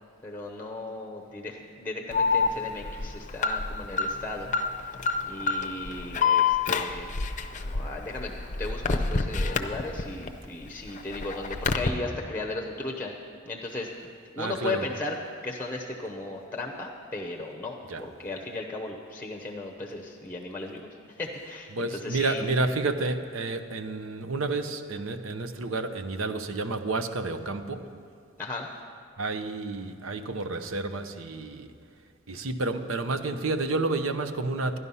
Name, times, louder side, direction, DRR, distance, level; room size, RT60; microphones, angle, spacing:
voice 1, 0.2-7.1 7.6-8.3 8.6-13.1 13.5-13.9 14.3-15.1 15.4-22.5 28.4-28.7, left 2 dB, 10° left, 1 dB, 0.8 m, -36 dB
Alarm, 2.1-10.3 10.7-11.9, left 5 dB, 40° left, 0.6 m, -27 dB
voice 2, 14.4-14.8 17.9-18.0 21.7-27.9 29.2-31.7 32.3-34.8, right 3 dB, 75° right, 9 dB, 0.8 m, -30 dB
12.5 x 11.0 x 5.5 m, 2.2 s
head